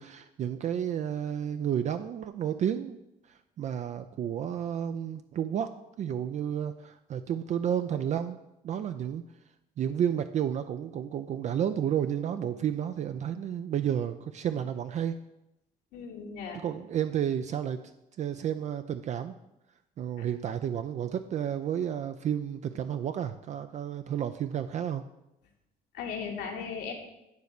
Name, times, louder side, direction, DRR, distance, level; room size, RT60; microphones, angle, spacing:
voice 1, 0.0-3.0 3.3-5.7 6.0-8.4 8.6-9.2 9.8-15.2 16.5-17.8 18.2-19.3 20.0-25.0, right 9 dB, 45° right, 9 dB, 0.4 m, -31 dB
voice 2, 15.9-16.6 25.9-26.9, left 6 dB, 80° left, 1 dB, 1.7 m, -37 dB
9.4 x 3.3 x 6.5 m, 0.89 s
cardioid pair, 110°, 17 cm